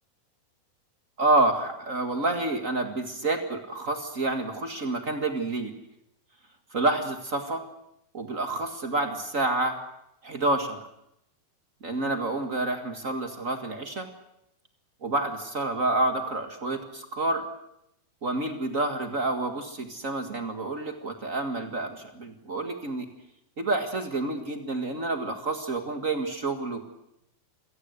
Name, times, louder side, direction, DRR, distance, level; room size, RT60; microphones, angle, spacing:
voice 1, 1.2-5.8 6.7-7.6 8.1-9.8 10.2-10.8 11.8-14.1 15.0-17.4 18.2-23.1 23.6-26.8, right 2 dB, 45° right, 6 dB, 1.0 m, -28 dB
27.5 x 18.0 x 8.1 m, 0.81 s
omnidirectional pair, 4.5 m